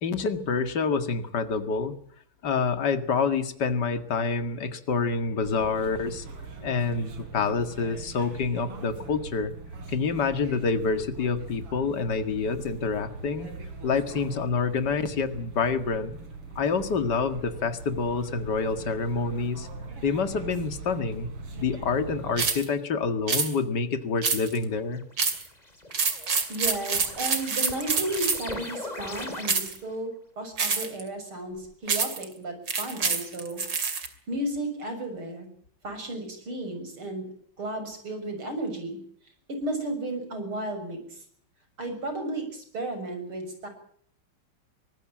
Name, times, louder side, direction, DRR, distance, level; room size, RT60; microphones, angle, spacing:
voice 1, 0.0-2.0 2.4-6.3 6.6-9.5 9.9-13.5 13.8-16.2 16.6-19.7 20.0-21.3 21.6-25.0, left 5 dB, 50° left, 9 dB, 2.5 m, -27 dB
sound 1, 5.4-22.5, right 3 dB, 85° right, 4.3 m, -41 dB
sound 2, 22.4-22.7 23.3-23.5 24.2-24.6 25.2-25.5 25.9-28.5 29.4-29.8 30.6-31.0 31.9-32.2 32.7-34.1, right 5 dB, 55° right, 3.4 m, -26 dB
sound 3, 25.0-29.9, left 2 dB, 15° left, 3.2 m, -40 dB
voice 2, 26.5-33.9 34.3-35.5 35.8-37.3 37.6-39.0 39.5-41.2 41.8-43.7, right 1 dB, 70° right, 7 dB, 7.7 m, -34 dB
24.0 x 19.5 x 7.5 m, 0.62 s
omnidirectional pair, 2.4 m